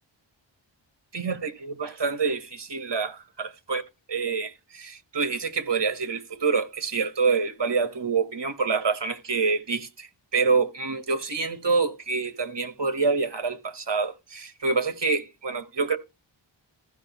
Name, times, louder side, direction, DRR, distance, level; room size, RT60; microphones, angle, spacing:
voice 1, 1.1-16.0, right 4 dB, 60° right, 1.5 m, -27 dB
15.5 x 6.1 x 3.1 m
wide cardioid pair, 65°, 47 cm